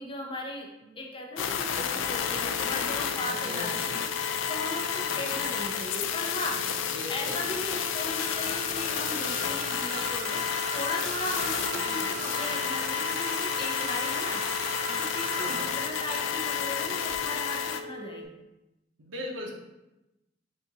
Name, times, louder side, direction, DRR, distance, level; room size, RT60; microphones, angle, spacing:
voice 1, 0.0-10.5 10.7-14.5 14.9-18.4, left 1 dB, 25° left, 1 dB, 0.6 m, -37 dB
sound 1, 1.4-17.8, left 8 dB, 80° left, 0.4 m, -31 dB
sound 2, 2.0-18.2, left 1 dB, 60° right, 1.2 m, -43 dB
voice 2, 3.1-3.9 5.1-5.4 6.9-7.4 11.8-12.4 15.4-15.7 19.0-19.5, equal, 90° right, 0 dB, 0.9 m, -39 dB
sound 3, 8.2-17.2, right 6 dB, 40° right, 0.3 m, -40 dB
5.2 x 2.5 x 4.1 m, 0.95 s
head